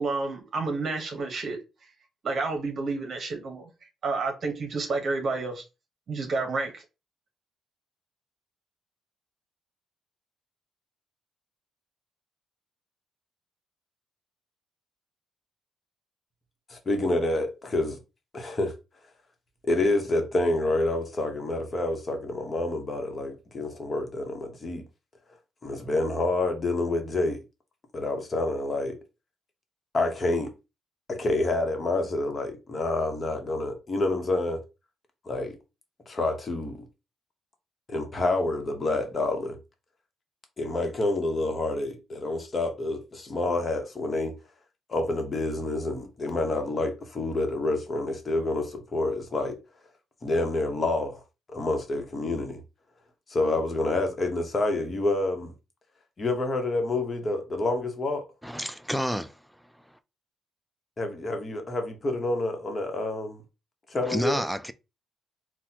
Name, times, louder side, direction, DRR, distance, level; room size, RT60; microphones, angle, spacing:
voice 1, 0.0-1.6 2.2-3.7 4.0-5.6 6.1-6.8, right 3 dB, 55° right, 0.9 m, -30 dB
voice 2, 16.7-18.0 18.3-18.7 19.6-24.8 25.6-27.4 27.9-29.0 29.9-30.5 31.1-34.6 35.3-35.6 36.1-36.8 37.9-39.6 40.6-44.3 44.9-49.6 50.2-51.2 51.5-52.6 53.3-55.5 56.2-58.2 61.0-63.4 63.9-64.4, left 2 dB, 35° left, 1.0 m, -28 dB
voice 3, 58.4-59.3 64.1-64.7, equal, ahead, 0.3 m, -29 dB
4.0 x 2.2 x 2.8 m
cardioid pair, 90°, 0 cm